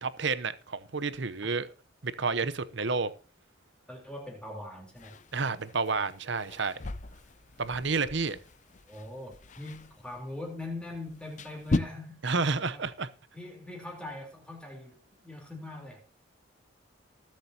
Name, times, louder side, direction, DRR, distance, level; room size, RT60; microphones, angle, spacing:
voice 1, 0.0-1.7 2.0-3.1 5.3-6.8 7.6-8.4 12.2-13.1, right 4 dB, 60° right, 0.8 m, -30 dB
voice 2, 3.9-5.2 5.5-5.7 8.9-12.2 12.7-12.9 13.3-16.0, left 2 dB, 5° left, 3.7 m, -42 dB
sound 1, 5.0-11.8, left 2 dB, 35° left, 0.5 m, -38 dB
20.0 x 7.7 x 2.9 m
head